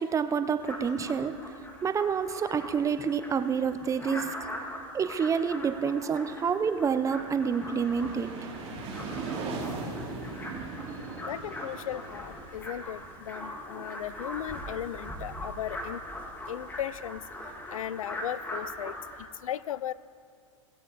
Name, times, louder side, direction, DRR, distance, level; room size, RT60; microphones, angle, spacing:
voice 1, 0.0-1.3 1.8-4.4 4.9-8.3, right 6 dB, 20° right, 11 dB, 0.6 m, -28 dB
sound 1, 0.6-19.3, left 1 dB, 10° left, 1.8 m, -41 dB
sound 2, 7.0-13.6, right 3 dB, 35° right, 3.0 m, -39 dB
voice 2, 11.3-16.0 16.5-17.2 17.7-19.0 19.4-19.9, left 11 dB, 90° left, 19 dB, 0.4 m, -36 dB
18.5 x 7.1 x 4.2 m, 2.3 s
hypercardioid pair, 115°, 17 cm